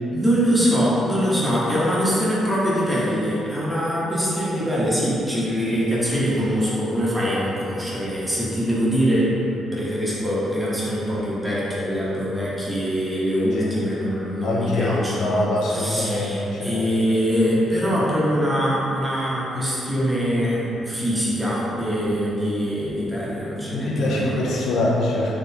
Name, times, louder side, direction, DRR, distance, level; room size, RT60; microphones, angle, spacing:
voice 1, 0.1-24.4, equal, 5° right, -7 dB, 1.0 m, -23 dB
voice 2, 14.4-16.9 23.7-25.4, left 1 dB, 75° left, -4 dB, 0.7 m, -24 dB
3.6 x 3.2 x 2.8 m, 2.9 s
cardioid pair, 90°, 0 cm